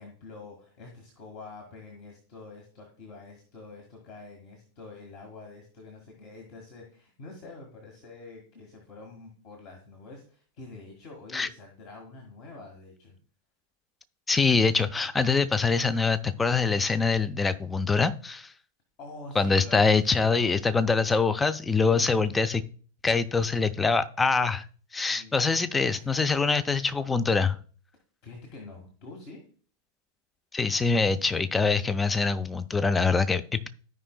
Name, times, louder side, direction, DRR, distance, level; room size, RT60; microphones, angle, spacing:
voice 1, 0.0-13.2 19.0-20.4 20.8-21.3 21.9-22.4 25.0-25.6 25.9-26.1 28.2-29.4, left 3 dB, 45° left, 1 dB, 1.6 m, -46 dB
voice 2, 14.3-18.5 19.4-22.6 23.0-24.6 24.9-27.6 30.5-33.7, left 4 dB, 15° left, 13 dB, 0.5 m, -24 dB
14.5 x 5.1 x 2.2 m, 0.42 s
figure-of-eight pair, 90°, 0 cm